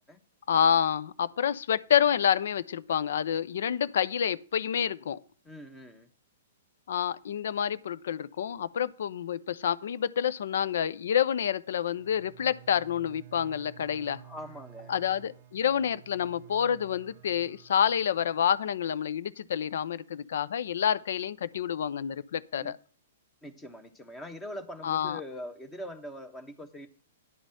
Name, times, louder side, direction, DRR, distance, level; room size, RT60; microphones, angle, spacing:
voice 1, 0.5-5.2 6.9-14.2 14.9-22.8 24.8-25.2, left 8 dB, 60° left, 0.5 m, -28 dB
voice 2, 5.4-6.1 14.2-14.9 22.6-22.7 23.4-26.9, left 1 dB, 15° left, 1.3 m, -42 dB
Bowed string instrument, 11.9-18.6, right 11 dB, 40° right, 0.8 m, -52 dB
10.5 x 4.0 x 7.6 m
figure-of-eight pair, 110°, 0 cm